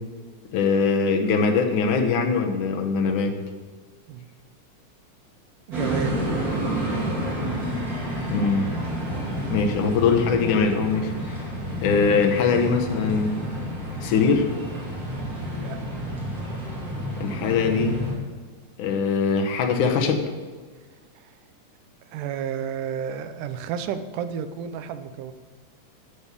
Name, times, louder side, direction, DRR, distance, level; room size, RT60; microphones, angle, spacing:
voice 1, 0.5-3.4 8.3-8.7 9.5-11.4 11.8-13.4 14.0-14.5 17.2-18.0 18.8-20.2, left 5 dB, 75° left, 4 dB, 2.5 m, -22 dB
sound 1, 5.7-18.1, equal, 30° right, 2.7 m, -30 dB
voice 2, 5.7-6.2 15.4-16.0 21.2-21.3 22.1-25.3, right 8 dB, 80° right, 10 dB, 2.3 m, -32 dB
11.5 x 5.4 x 8.2 m, 1.5 s
omnidirectional pair, 3.7 m